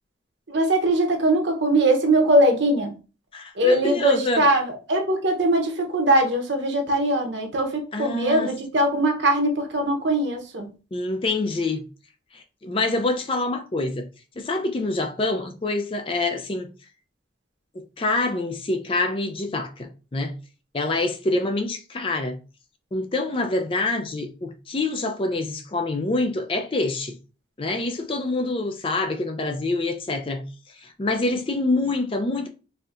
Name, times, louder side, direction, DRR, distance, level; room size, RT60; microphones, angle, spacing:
voice 1, 0.5-2.9 3.6-10.7, right 1 dB, 70° right, 0.8 m, -21 dB
voice 2, 3.3-4.5 7.9-8.5 10.9-11.8 12.3-14.1 14.4-16.7 17.7-20.3 20.7-22.4 22.9-27.2 27.6-32.5, left 2 dB, 30° left, 0.4 m, -26 dB
4.1 x 2.7 x 2.4 m
head